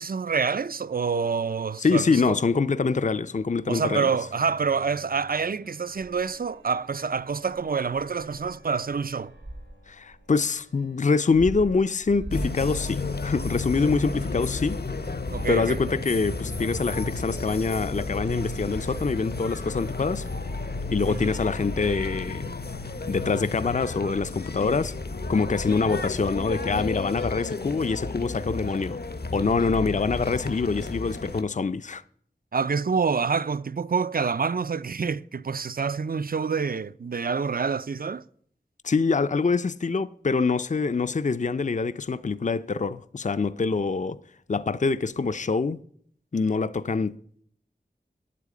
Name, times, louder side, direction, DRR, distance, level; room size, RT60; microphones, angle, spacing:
voice 1, 0.0-2.4 3.7-9.3 15.3-15.8 21.1-21.3 32.5-38.2, right 5 dB, 55° right, 0.4 m, -27 dB
voice 2, 1.8-4.1 9.9-15.0 15.5-20.3 20.9-22.5 23.1-25.0 25.3-29.0 29.3-32.0 38.8-44.2 44.5-45.8 46.3-47.2, left 4 dB, 45° left, 0.4 m, -25 dB
Bowed string instrument, 4.0-11.2, left 5 dB, 85° left, 1.7 m, -55 dB
sound 1, 5.4-24.9, right 1 dB, 90° right, 2.3 m, -46 dB
sound 2, 12.3-31.4, left 3 dB, 65° left, 0.8 m, -32 dB
8.9 x 8.5 x 8.3 m
wide cardioid pair, 45°, 18 cm